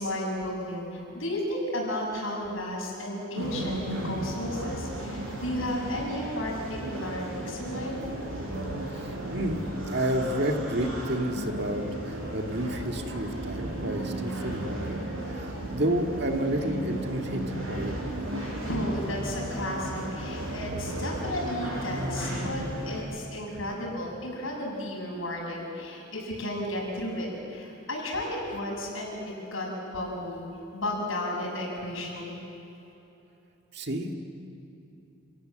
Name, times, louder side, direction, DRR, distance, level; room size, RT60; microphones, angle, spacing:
voice 1, 0.0-8.0 18.3-29.2 29.5-30.4 30.7-32.3, left 1 dB, 70° left, -2 dB, 7.1 m, -33 dB
sound 1, 3.4-23.0, right 1 dB, 75° right, 6.8 m, -34 dB
voice 2, 8.9-17.9 33.7-34.1, right 1 dB, 50° right, 3 dB, 1.9 m, -30 dB
29.0 x 18.0 x 7.7 m, 2.9 s
head